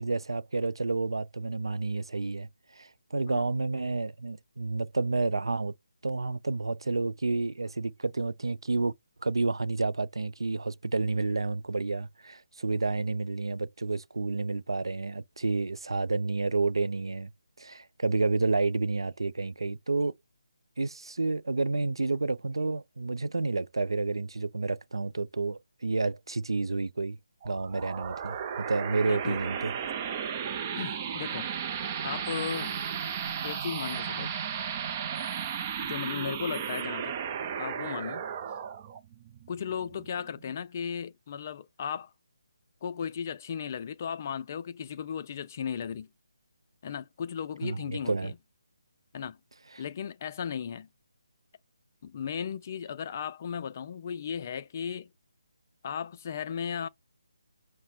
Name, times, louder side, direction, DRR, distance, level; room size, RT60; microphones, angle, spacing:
voice 1, 0.0-2.5 2.8-5.7 6.0-8.9 9.2-17.3 17.6-20.1 20.8-27.2 27.4-29.7 47.6-47.8 48.1-48.3, right 3 dB, 90° right, 0.4 m, -30 dB
sound 1, 27.4-40.5, right 7 dB, 25° right, 0.5 m, -35 dB
voice 2, 29.0-29.4 30.7-31.5 32.0-32.8 33.4-34.3 35.8-37.1 37.6-38.3 39.5-42.1 42.8-46.1 46.8-48.4 49.1-49.4 49.8-50.9 52.0-55.1 55.8-56.9, left 7 dB, 35° left, 0.4 m, -36 dB
5.8 x 2.1 x 4.3 m
figure-of-eight pair, 160°, 2 cm